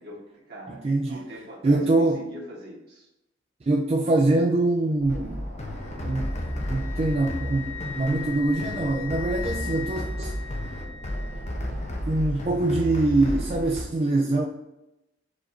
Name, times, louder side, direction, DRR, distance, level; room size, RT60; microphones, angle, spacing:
voice 1, 0.0-3.1, equal, 55° right, -4 dB, 1.5 m, -42 dB
voice 2, 0.7-1.3 1.6-2.3 3.7-5.4 6.0-6.3 6.7-10.3 12.1-14.5, right 2 dB, 30° right, 0 dB, 0.4 m, -24 dB
sound 1, 5.0-12.0, equal, 55° left, 1.2 m, -41 dB
sound 2, 5.1-13.8, equal, 35° left, 0.6 m, -33 dB
Wind instrument woodwind instrument, 5.8-11.7, left 8 dB, 85° left, 0.5 m, -40 dB
4.7 x 2.6 x 4.2 m, 0.92 s
head